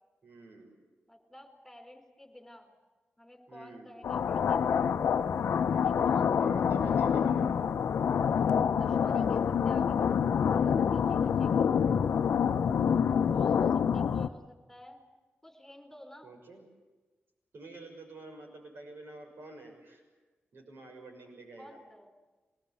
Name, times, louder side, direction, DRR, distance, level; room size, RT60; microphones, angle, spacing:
voice 1, 0.2-0.8 3.5-3.9 5.5-6.1 6.4-7.5 9.1-9.3 16.2-16.7 17.5-20.0 20.5-21.8, right 2 dB, 60° right, 3 dB, 6.2 m, -49 dB
voice 2, 1.1-2.7 3.2-4.8 5.8-6.5 6.8-7.0 8.7-10.2 10.5-11.7 13.3-15.1 15.4-16.3 21.6-22.1, left 1 dB, 5° left, 4 dB, 4.3 m, -51 dB
sound 1, 4.0-14.3, left 7 dB, 85° left, 0.7 m, -27 dB
24.0 x 19.5 x 8.6 m, 1.3 s
wide cardioid pair, 110°, 4 cm